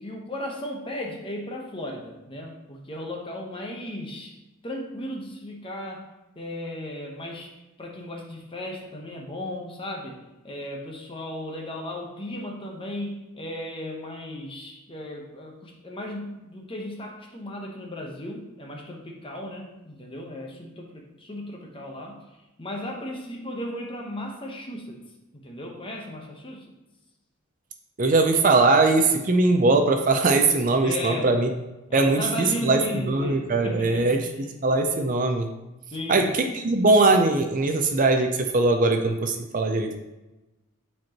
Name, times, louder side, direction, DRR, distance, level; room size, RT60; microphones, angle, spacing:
voice 1, 0.0-4.4 4.6-6.1 6.4-22.2 22.6-25.0 25.3-26.7 30.8-31.4 31.9-34.2 35.9-36.3, left 1 dB, 25° left, 1 dB, 0.9 m, -36 dB
voice 2, 28.0-31.5 31.9-32.8 33.1-34.3 34.6-35.5 36.1-36.2 36.5-40.0, right 3 dB, 35° right, 5 dB, 0.5 m, -21 dB
9.1 x 4.4 x 2.9 m, 1.0 s
head